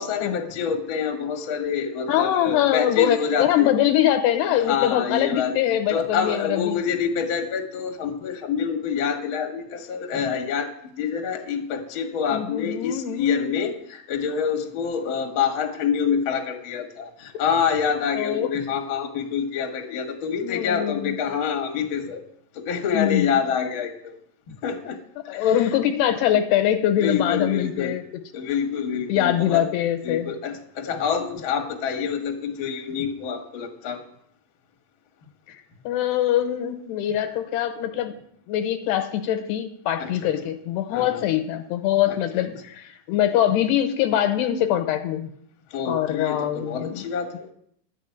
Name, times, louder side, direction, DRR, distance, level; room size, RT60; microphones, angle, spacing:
voice 1, 0.0-3.7 4.5-5.5 5.9-22.2 22.5-24.2 24.5-25.0 25.2-25.7 27.0-28.0 28.3-29.6 30.0-34.0 40.0-40.3 40.9-41.3 42.1-42.5 45.7-47.5, left 7 dB, 50° left, 4 dB, 1.5 m, -27 dB
voice 2, 2.1-6.8 12.3-13.5 18.1-18.5 19.8-20.0 20.4-21.1 22.9-23.3 25.3-28.0 29.1-30.3 35.8-38.1 38.5-45.3 45.9-47.0, left 11 dB, 80° left, 8 dB, 3.0 m, -23 dB
12.0 x 6.2 x 9.3 m, 0.66 s
omnidirectional pair, 4.9 m